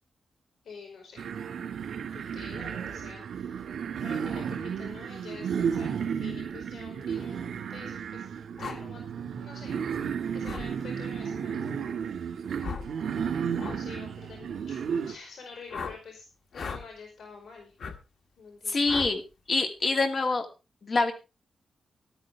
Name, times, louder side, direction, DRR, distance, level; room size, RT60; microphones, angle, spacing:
voice 1, 0.6-1.3 2.1-3.8 4.0-8.3 8.6-9.0 9.4-9.9 10.3-12.0 12.7-13.3 13.5-16.2 16.5-17.7 18.4-18.8, left 4 dB, 85° left, 1 dB, 5.1 m, -47 dB
sound 1, 1.2-15.2, right 7 dB, 80° right, 2.2 m, -33 dB
sound 2, 8.6-8.8 10.4-10.7 12.6-12.9 13.6-13.8 15.7-16.0 16.5-16.8 17.8-18.0 18.9-19.1, left 5 dB, 65° left, 1.6 m, -36 dB
voice 2, 18.7-19.2 19.5-20.5 20.8-21.1, left 3 dB, 45° left, 5 dB, 2.4 m, -25 dB
14.0 x 12.0 x 3.6 m, 0.30 s
wide cardioid pair, 140°, 0 cm